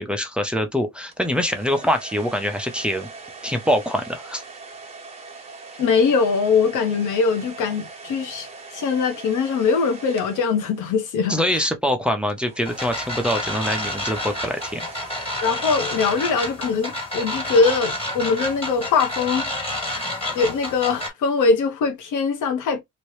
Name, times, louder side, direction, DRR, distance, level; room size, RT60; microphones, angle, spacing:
voice 1, 0.0-3.1 3.4-4.4 11.3-14.8, equal, 5° right, 0.7 m, -24 dB
sound 1, 1.1-11.2 12.3-17.0, right 3 dB, 20° right, 1.0 m, -41 dB
voice 2, 5.8-11.7 15.4-19.5 19.8-22.8, left 5 dB, 80° left, 0.9 m, -22 dB
sound 2, 12.7-21.1, left 1 dB, 20° left, 1.9 m, -29 dB
2.9 x 2.7 x 3.2 m
cardioid pair, 90°, 30 cm